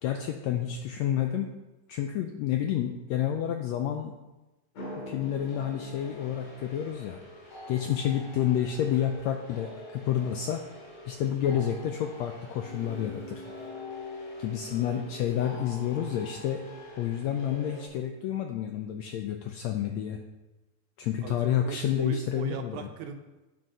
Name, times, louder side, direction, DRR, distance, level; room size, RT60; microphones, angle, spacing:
voice 1, 0.0-1.5 1.9-4.1 5.1-7.2 7.7-10.6 11.1-13.4 14.4-16.6 17.0-20.2 21.0-22.8, left 10 dB, 85° left, 4 dB, 1.5 m, -29 dB
sound 1, 4.7-17.9, left 1 dB, 60° left, 3.2 m, -44 dB
voice 2, 21.2-23.2, right 7 dB, 75° right, 5 dB, 2.1 m, -39 dB
9.0 x 6.3 x 5.5 m, 1.1 s
omnidirectional pair, 3.7 m